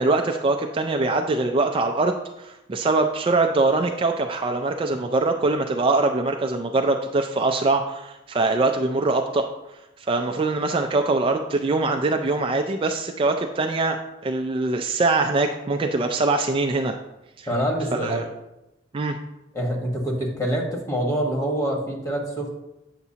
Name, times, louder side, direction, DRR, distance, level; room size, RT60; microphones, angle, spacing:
voice 1, 0.0-9.5 10.1-14.0 14.2-17.0 17.4-17.5 18.0-18.2 18.9-19.2, right 3 dB, 30° right, 4 dB, 0.3 m, -23 dB
voice 2, 17.5-18.2 19.5-22.5, equal, 20° left, 0 dB, 1.3 m, -25 dB
8.0 x 5.9 x 2.8 m, 0.93 s
head